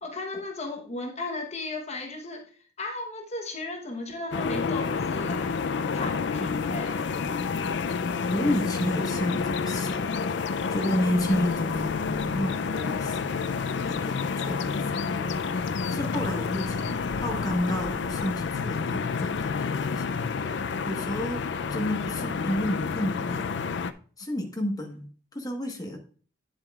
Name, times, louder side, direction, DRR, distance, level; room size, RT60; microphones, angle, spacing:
voice 1, 0.0-2.4 2.8-5.6 5.9-7.1, left 2 dB, 40° left, 2 dB, 1.1 m, -35 dB
sound 1, 4.3-23.9, left 5 dB, 75° left, 0.4 m, -29 dB
voice 2, 8.3-10.1 10.7-13.5 13.8-23.5 24.2-26.0, left 1 dB, 20° left, 2 dB, 1.3 m, -31 dB
9.0 x 7.6 x 2.4 m, 0.41 s
head